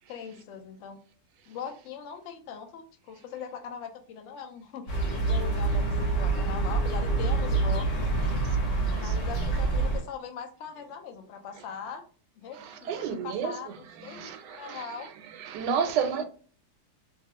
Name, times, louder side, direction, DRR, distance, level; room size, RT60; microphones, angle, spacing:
voice 1, 0.1-1.0 1.5-8.4 8.9-12.0 12.4-15.1 15.7-16.2, left 7 dB, 70° left, 0.7 m, -41 dB
sound 1, 4.9-10.0, right 3 dB, 50° left, 1.2 m, -26 dB
voice 2, 12.6-13.6 14.0-14.8 15.4-16.2, right 7 dB, 85° right, 1.2 m, -31 dB
2.9 x 2.3 x 2.9 m
omnidirectional pair, 1.8 m